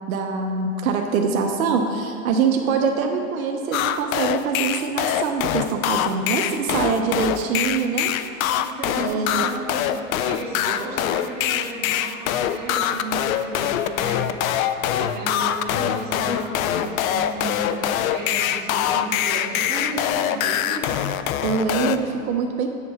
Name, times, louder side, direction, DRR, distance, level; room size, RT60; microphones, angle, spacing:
voice 1, 0.1-8.1 9.0-9.5 21.4-22.7, right 5 dB, 80° right, 3 dB, 0.8 m, -24 dB
sound 1, 3.7-22.0, left 10 dB, 80° left, 0.5 m, -23 dB
voice 2, 6.5-6.9 8.5-21.0, right 2 dB, 25° right, -6 dB, 2.0 m, -34 dB
8.6 x 6.7 x 3.5 m, 2.4 s
supercardioid pair, 150°, 41 cm